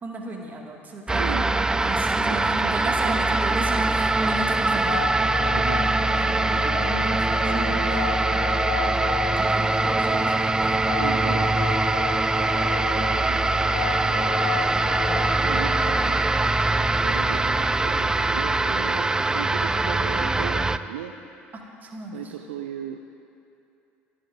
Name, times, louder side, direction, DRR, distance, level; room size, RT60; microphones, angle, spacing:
voice 1, 0.0-5.0 5.6-5.9 6.2-8.4 9.3-10.8 21.5-22.3, right 2 dB, 30° right, 0 dB, 2.1 m, -36 dB
sound 1, 1.1-20.8, right 2 dB, 10° right, 0.4 m, -23 dB
voice 2, 1.1-1.6 2.3-2.9 3.3-3.4 4.7-5.1 5.5-5.8 10.1-10.2 11.0-12.0 12.7-13.5 14.0-14.3 15.4-16.3 16.7-21.2 22.1-23.0, right 10 dB, 70° right, 6 dB, 0.5 m, -37 dB
sound 2, 4.5-17.2, left 8 dB, 50° left, 1.4 m, -34 dB
27.0 x 11.5 x 2.7 m, 2.7 s
figure-of-eight pair, 65°, 6 cm